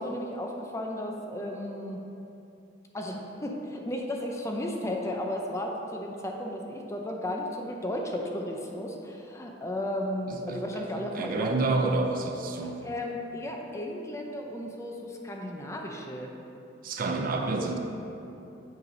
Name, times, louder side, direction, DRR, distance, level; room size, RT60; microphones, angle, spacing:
voice 1, 0.0-2.0 2.9-11.5 12.8-16.3, left 1 dB, 15° left, 1 dB, 0.5 m, -34 dB
voice 2, 10.3-10.8 11.1-12.8 16.8-17.8, right 3 dB, 50° right, 3 dB, 0.5 m, -29 dB
7.3 x 3.2 x 5.2 m, 2.8 s
head